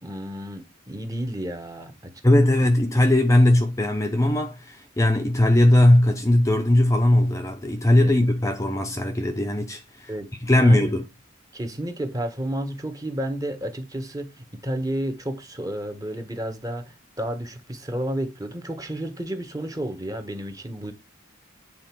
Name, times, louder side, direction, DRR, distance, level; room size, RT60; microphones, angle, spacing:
voice 1, 0.0-2.1 8.0-8.1 10.1-10.9 11.5-20.9, right 1 dB, 20° right, 1.4 m, -31 dB
voice 2, 2.2-10.1 10.4-11.0, left 1 dB, 15° left, 0.8 m, -19 dB
8.9 x 4.3 x 6.0 m
head